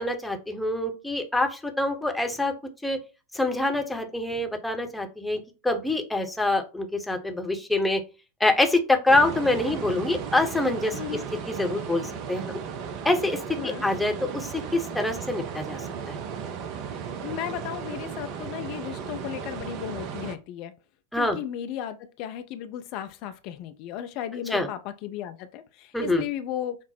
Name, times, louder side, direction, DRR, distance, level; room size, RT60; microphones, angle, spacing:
voice 1, 0.0-2.5 2.8-3.0 3.3-8.0 8.4-11.2 11.5-12.5 13.0-16.2 21.1-21.4 24.5-24.7 25.9-26.2, left 2 dB, 5° left, 0.9 m, -25 dB
sound 1, 9.1-20.4, right 6 dB, 40° right, 0.6 m, -35 dB
voice 2, 10.9-11.2 13.6-13.8 17.2-20.7 21.2-26.8, left 10 dB, 40° left, 0.4 m, -35 dB
5.8 x 2.0 x 4.3 m
figure-of-eight pair, 90°, 0 cm